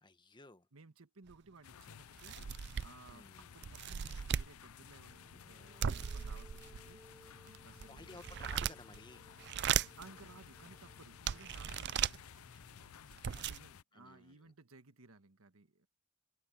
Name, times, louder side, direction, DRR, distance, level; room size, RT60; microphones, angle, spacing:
voice 1, 0.0-0.7 3.1-3.5 7.9-9.3 13.0-13.4 13.9-14.5, left 2 dB, 20° left, 1.2 m, -56 dB
voice 2, 0.7-2.4 2.8-7.0 7.4-8.2 9.8-12.1 13.4-15.9, right 3 dB, 80° right, 1.5 m, -59 dB
sound 1, 1.3-1.4 1.8-1.9 2.2-3.1 3.6-4.5 5.8-6.9 7.5-9.0 9.4-10.1 10.7-10.8 11.3-12.2 12.8-12.9 13.1-13.6, right 8 dB, 50° right, 0.4 m, -37 dB
sound 2, 1.6-13.8, left 8 dB, 80° left, 0.5 m, -56 dB
sound 3, 5.1-12.5, equal, 5° right, 1.6 m, -64 dB
head